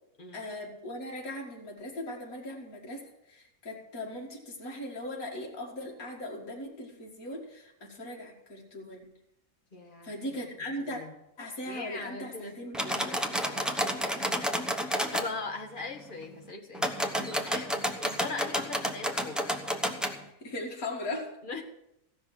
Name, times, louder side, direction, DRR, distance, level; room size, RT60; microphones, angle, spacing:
voice 1, 0.3-9.0 10.0-11.0 11.4-13.2 17.7-17.9 20.4-21.3, left 1 dB, 65° left, -2 dB, 2.7 m, -39 dB
voice 2, 9.7-10.4 10.8-11.1 11.6-17.7 18.0-19.5 21.4-21.6, left 3 dB, 35° left, 1 dB, 1.6 m, -41 dB
sound 1, 12.7-15.3 16.7-20.2, equal, ahead, 0.6 m, -30 dB
15.5 x 6.0 x 7.5 m, 0.83 s
omnidirectional pair, 1.7 m